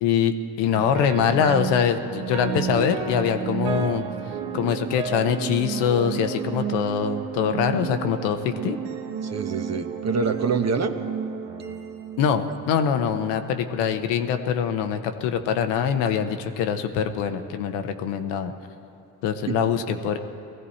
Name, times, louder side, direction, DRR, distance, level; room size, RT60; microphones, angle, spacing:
voice 1, 0.0-4.0 4.5-8.8 12.2-18.5 19.2-20.2, left 7 dB, 80° left, 7 dB, 0.9 m, -24 dB
sound 1, 0.6-12.9, right 8 dB, 85° right, 1.0 m, -32 dB
voice 2, 9.2-10.9 19.5-19.6, right 5 dB, 40° right, 7 dB, 1.1 m, -26 dB
19.5 x 14.5 x 4.3 m, 2.8 s
hypercardioid pair, 55°, 41 cm